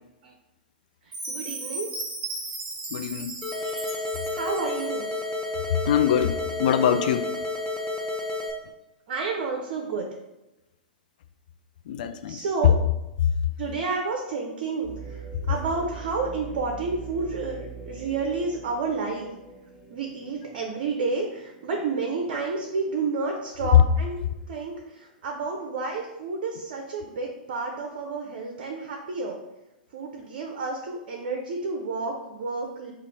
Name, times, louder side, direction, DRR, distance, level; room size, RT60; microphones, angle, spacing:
Chime, 1.1-5.2, right 2 dB, 35° right, 1.1 m, -36 dB
voice 1, 1.3-1.9 4.3-5.1 9.1-10.1 12.3-12.7 13.6-19.3 19.9-24.2 24.5-29.4 29.9-32.9, right 4 dB, 55° right, 1 dB, 0.5 m, -30 dB
voice 2, 2.9-4.0 5.7-7.3 11.9-12.7 13.2-13.3 23.6-23.7, left 9 dB, 60° left, 9 dB, 0.3 m, -24 dB
sound 1, 3.4-8.5, left 2 dB, 15° left, 0.7 m, -31 dB
sound 2, 14.8-24.8 25.3-25.4 26.0-26.4, right 6 dB, 5° right, 1.0 m, -44 dB
3.0 x 2.4 x 4.1 m, 0.98 s
figure-of-eight pair, 105°, 5 cm